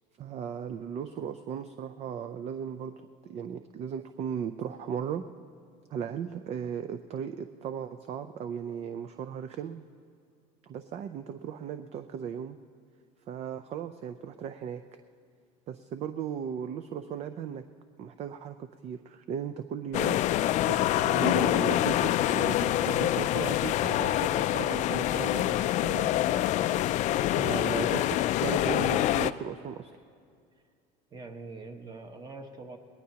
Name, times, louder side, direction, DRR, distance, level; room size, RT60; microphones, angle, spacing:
voice 1, 0.2-5.3 5.9-9.8 10.6-12.6 13.3-15.0 15.7-17.6 18.0-20.2 20.7-26.1 27.3-29.9, right 8 dB, 40° right, 9 dB, 0.5 m, -37 dB
sound 1, 19.9-29.3, left 13 dB, 45° left, 0.4 m, -26 dB
voice 2, 26.6-27.3 31.1-32.8, right 3 dB, 25° right, 5 dB, 1.3 m, -45 dB
20.5 x 18.5 x 2.9 m, 2.3 s
cardioid pair, 130°, 16 cm